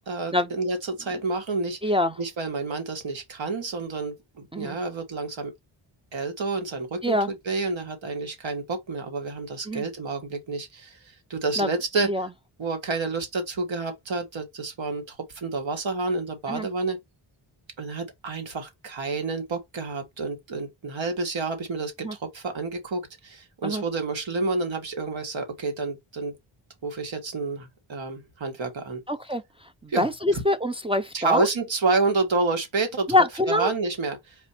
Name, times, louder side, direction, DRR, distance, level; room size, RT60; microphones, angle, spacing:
voice 1, 0.1-1.8 2.2-5.5 6.1-11.0 11.3-12.1 12.6-17.0 17.8-26.4 26.8-29.0 29.9-30.1 31.1-33.1 33.5-34.3, right 3 dB, 65° right, 1.9 m, -29 dB
voice 2, 1.8-2.1 4.5-4.8 7.0-7.3 9.7-9.8 11.6-11.7 12.0-12.3 16.5-16.7 22.0-22.2 23.6-23.8 29.1-31.5 33.1-33.7, left 1 dB, 10° right, 0.5 m, -25 dB
4.3 x 2.6 x 4.2 m
cardioid pair, 65°, 49 cm